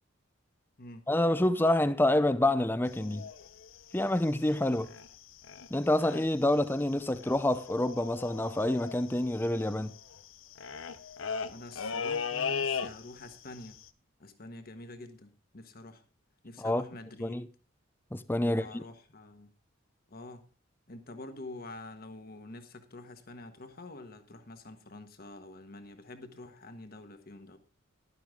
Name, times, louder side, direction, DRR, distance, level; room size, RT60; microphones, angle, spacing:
voice 1, 1.1-3.3 3.9-4.9 5.7-9.9 16.6-16.8 17.2-17.4 18.1-18.8, left 1 dB, 10° left, 0.5 m, -27 dB
sound 1, 2.8-5.2 5.4-5.7 6.0-6.5 6.7-6.8 7.0-13.3 13.6-13.9, left 6 dB, 75° left, 0.7 m, -38 dB
voice 2, 11.5-13.8 14.2-16.1 16.4-17.4 18.4-19.5 20.1-20.5 20.9-27.6, left 2 dB, 50° left, 1.4 m, -47 dB
11.5 x 11.5 x 3.7 m
head